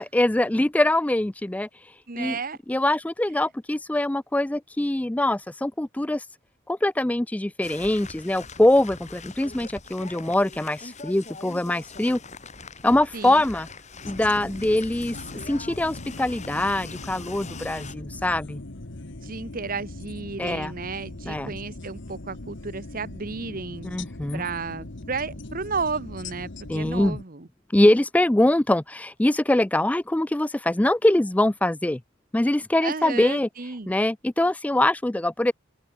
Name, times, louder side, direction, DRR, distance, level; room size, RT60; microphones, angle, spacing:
voice 1, 0.0-1.7 2.2-2.4 2.7-6.2 6.7-12.2 12.8-13.7 14.0-18.6 20.4-20.7 21.3-21.5 23.8-24.4 26.7-27.2 27.7-32.0 32.3-33.5 33.9-35.5, left 1 dB, 5° left, 0.3 m, -23 dB
voice 2, 2.1-2.6 13.1-13.4 19.2-23.9 24.3-26.5 26.7-27.5 32.8-33.9, right 4 dB, 40° right, 1.0 m, -33 dB
sound 1, 7.6-17.9, left 4 dB, 35° left, 4.3 m, -42 dB
sound 2, 14.0-27.2, left 2 dB, 55° left, 1.4 m, -40 dB
head